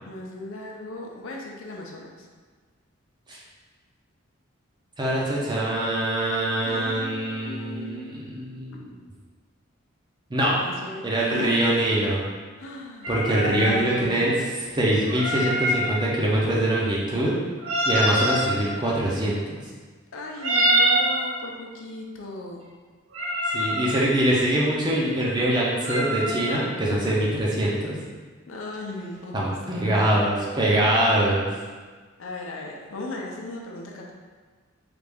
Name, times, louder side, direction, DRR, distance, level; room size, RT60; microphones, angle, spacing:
voice 1, 0.1-2.3 6.6-8.1 10.5-11.0 11.3-11.5 12.6-13.2 13.5-14.5 20.1-22.6 28.5-30.3 32.2-34.1, left 2 dB, 75° left, -1 dB, 0.5 m, -37 dB
voice 2, 5.0-8.9 10.3-10.6 11.0-12.2 13.1-14.3 14.7-17.3 17.8-19.6 23.5-27.9 29.3-31.5, right 1 dB, 20° right, -5 dB, 0.5 m, -23 dB
sound 1, 13.0-13.8 15.1-15.9 17.6-18.5 20.4-21.2 23.1-23.9 25.8-26.6, right 1 dB, 85° right, 0.7 m, -24 dB
3.3 x 2.5 x 3.4 m, 1.4 s
head